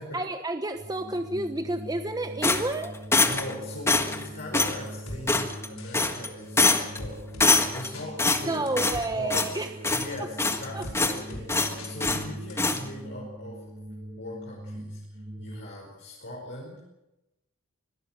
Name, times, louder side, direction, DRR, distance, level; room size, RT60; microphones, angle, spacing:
voice 1, 0.1-3.0 8.4-9.7 10.2-10.3 10.7-10.8, right 2 dB, 20° right, 7 dB, 1.0 m, -30 dB
sound 1, 0.7-15.6, right 1 dB, 40° right, 4.3 m, -42 dB
sound 2, 2.4-3.5 3.9-4.2 4.5-4.8 5.3-5.7 5.9-6.3 6.6-7.0 7.4-7.9 8.2-9.0 9.3-9.6 9.8-10.7 10.9-11.2 11.5-12.2 12.6-12.8, left 3 dB, 15° left, 1.6 m, -24 dB
voice 2, 3.2-8.7 9.1-9.4 9.8-13.7 14.2-16.8, left 1 dB, 60° left, -3 dB, 5.2 m, -40 dB
sound 3, 5.1-5.2 5.8-6.1 7.0-7.5 7.9-8.1 8.7-9.0 9.4-10.0 10.8-11.0 11.3-11.4 11.8-12.2 12.5-12.6, left 1 dB, 85° left, 5.6 m, -40 dB
24.5 x 17.0 x 7.7 m, 0.96 s
head